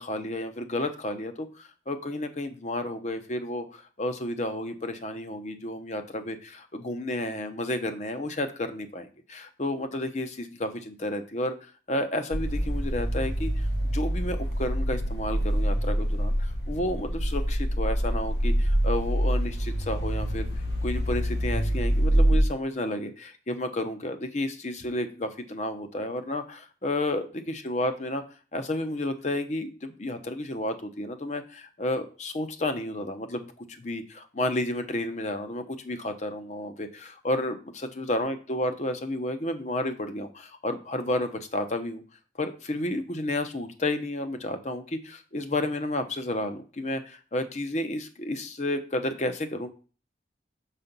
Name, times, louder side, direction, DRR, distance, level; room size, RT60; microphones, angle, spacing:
voice 1, 0.0-11.5 11.9-20.5 20.8-28.2 28.5-42.0 42.4-49.7, left 1 dB, 40° left, 8 dB, 0.8 m, -31 dB
sound 1, 12.3-22.4, equal, 80° left, 1.4 m, -26 dB
6.9 x 4.2 x 5.3 m, 0.37 s
head